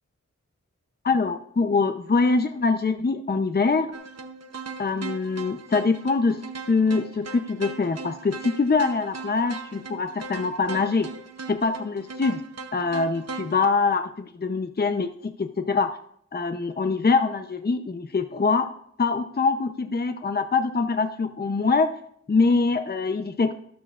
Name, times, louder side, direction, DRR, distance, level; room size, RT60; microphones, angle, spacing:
voice 1, 1.0-3.9 4.8-6.4 6.7-11.1 11.5-12.4 12.7-16.0 16.3-18.7 19.0-21.9 22.3-23.5, left 4 dB, 35° left, 7 dB, 0.7 m, -24 dB
sound 1, 3.9-13.7, right 4 dB, 60° right, 0.8 m, -39 dB
13.0 x 12.5 x 2.4 m, 0.66 s
wide cardioid pair, 75°, 29 cm